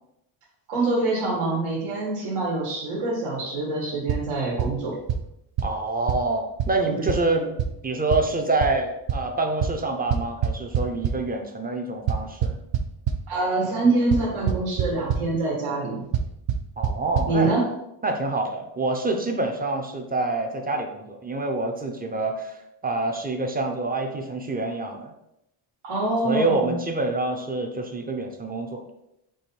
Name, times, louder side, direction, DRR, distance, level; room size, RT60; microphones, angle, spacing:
voice 1, 0.7-5.0 6.9-7.1 13.3-16.1 17.3-17.7 25.8-26.8, right 2 dB, 85° right, -4 dB, 1.5 m, -25 dB
sound 1, 4.1-4.2 4.6-4.7 5.1-5.2 5.6-5.7 6.1-6.2 6.6-6.7 7.1-7.2 7.6-7.7 8.1-8.2 8.6-8.7 9.1-9.2 9.6-9.7 10.1-11.1 12.1-13.2 14.1-14.2 14.5-14.8 15.1-15.2 16.1-16.2 16.5-16.6 16.8-16.9 17.1-17.3, right 10 dB, 65° right, 0.7 m, -23 dB
voice 2, 5.6-7.5 7.8-12.6 16.8-17.5 18.0-25.1 26.2-28.8, right 2 dB, 20° right, 3 dB, 0.4 m, -26 dB
4.7 x 2.6 x 4.3 m, 0.83 s
cardioid pair, 145°, 49 cm